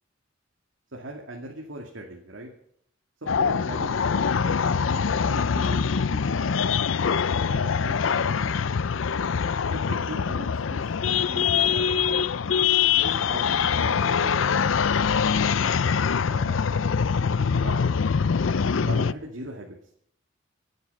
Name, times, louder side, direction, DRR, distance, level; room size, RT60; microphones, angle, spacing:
voice 1, 0.9-2.5 3.2-5.8 6.1-6.5 7.5-8.7 9.7-11.9 13.0-14.6 16.3-16.7 17.5-17.9 18.8-19.8, right 1 dB, 75° right, 0 dB, 2.3 m, -40 dB
sound 1, 3.3-19.1, left 6 dB, 75° left, 0.5 m, -24 dB
26.0 x 9.5 x 5.5 m, 0.68 s
head